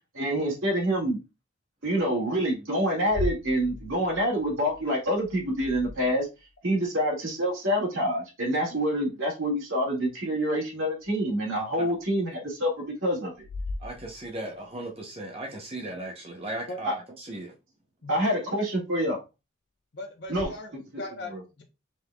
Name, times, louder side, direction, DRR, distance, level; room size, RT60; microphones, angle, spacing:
voice 1, 0.1-1.2 1.8-6.3 6.6-13.3 16.8-16.9 18.1-19.2 20.3-21.0 21.3-21.4, equal, 90° right, 2.0 m, -27 dB
sound 1, 3.0-6.5 11.0-11.1 12.0-12.1 13.4-14.7 20.3-20.4, left 2 dB, 40° left, 0.4 m, -38 dB
voice 2, 13.8-17.5, right 1 dB, 30° right, 0.7 m, -37 dB
voice 3, 18.0-18.6 19.9-21.6, left 2 dB, 55° left, 0.8 m, -39 dB
5.1 x 3.9 x 2.2 m
head